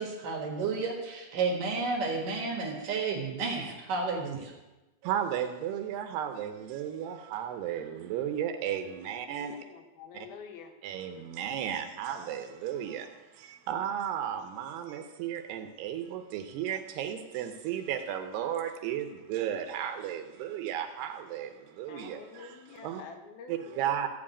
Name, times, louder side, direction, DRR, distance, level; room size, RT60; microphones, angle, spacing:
voice 1, 0.0-4.6, right 4 dB, 60° right, 1 dB, 2.7 m, -32 dB
voice 2, 5.0-9.6 10.1-10.3 10.8-23.0 23.5-24.1, right 10 dB, 80° right, 6 dB, 2.7 m, -34 dB
voice 3, 8.8-10.7 21.9-23.8, left 6 dB, 70° left, 4 dB, 2.8 m, -48 dB
14.5 x 5.1 x 8.4 m, 1.1 s
omnidirectional pair, 4.8 m